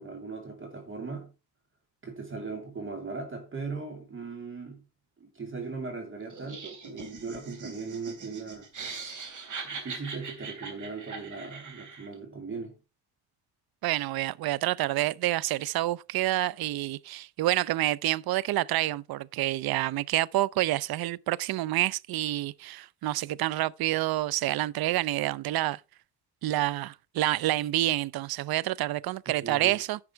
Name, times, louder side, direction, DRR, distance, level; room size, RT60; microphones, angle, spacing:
voice 1, 0.0-1.3 2.0-4.8 5.2-8.7 9.6-12.7 29.4-29.7, right 4 dB, 30° right, 2.8 m, -38 dB
Laughter, 6.3-12.1, right 4 dB, 45° right, 3.1 m, -41 dB
voice 2, 13.8-25.8 26.4-30.0, right 16 dB, 65° right, 0.5 m, -28 dB
10.5 x 6.1 x 4.5 m
cardioid pair, 130°, 41 cm